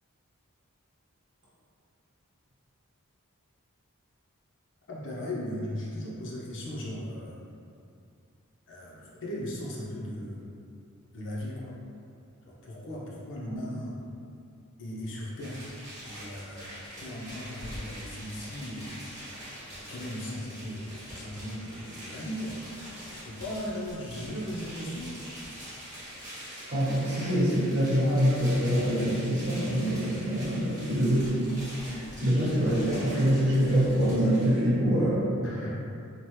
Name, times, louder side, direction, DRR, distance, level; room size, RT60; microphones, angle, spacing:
voice 1, 4.9-7.4 8.7-10.5 11.1-11.8 12.5-14.0 14.8-15.6 16.0-19.1 19.8-22.6 23.1-25.2 32.1-32.4 35.4-35.8, left 1 dB, 60° left, -5 dB, 0.6 m, -37 dB
sound 1, 15.4-34.5, equal, 15° right, 1.0 m, -44 dB
voice 2, 26.7-35.2, equal, 55° right, -10 dB, 1.1 m, -25 dB
2.9 x 2.1 x 3.1 m, 2.5 s
head